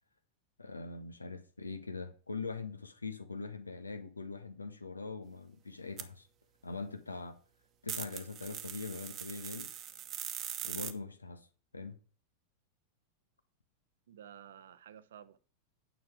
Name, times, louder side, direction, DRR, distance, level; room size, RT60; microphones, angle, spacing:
voice 1, 0.6-6.3 6.6-7.4 7.8-9.7 10.6-11.5 11.7-12.0, left 4 dB, 80° left, 1.1 m, -42 dB
sound 1, 6.0-6.1 7.9-10.9, right 10 dB, 30° right, 1.0 m, -41 dB
voice 2, 14.1-15.4, right 9 dB, 60° right, 0.7 m, -52 dB
9.3 x 6.0 x 4.8 m
figure-of-eight pair, 90°, 0 cm